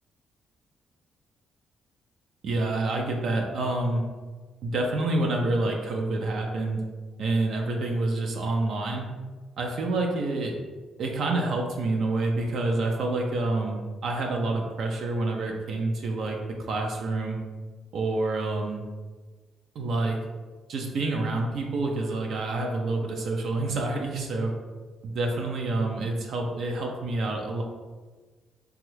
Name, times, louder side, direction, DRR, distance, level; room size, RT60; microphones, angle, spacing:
voice 1, 2.4-4.0 4.6-6.8 7.2-9.1 9.6-10.6 11.0-16.4 16.7-17.4 17.9-18.8 19.8-20.2 20.7-24.5 25.0-27.6, right 2 dB, 65° right, 1 dB, 0.4 m, -27 dB
3.1 x 2.3 x 3.1 m, 1.3 s
cardioid pair, 90°, 0 cm